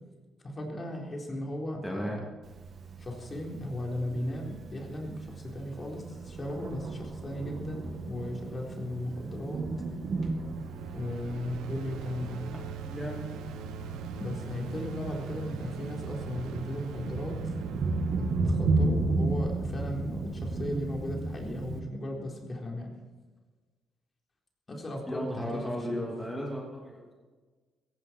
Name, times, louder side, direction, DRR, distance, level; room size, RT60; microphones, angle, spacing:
voice 1, 0.4-2.2 3.0-9.6 10.9-12.4 14.2-17.5 18.2-22.9 24.7-25.6 25.9-26.1, left 1 dB, 30° left, 0 dB, 4.0 m, -36 dB
voice 2, 1.8-2.2 12.5-12.6 12.8-13.4 15.0-15.4 16.0-16.1 25.1-27.1, equal, 5° left, -2 dB, 2.9 m, -36 dB
Thunder, 2.4-21.8, right 3 dB, 50° right, 2.4 m, -34 dB
sound 1, 10.0-21.0, right 6 dB, 90° right, 1.2 m, -43 dB
16.5 x 16.0 x 4.6 m, 1.4 s
cardioid pair, 90°, 0 cm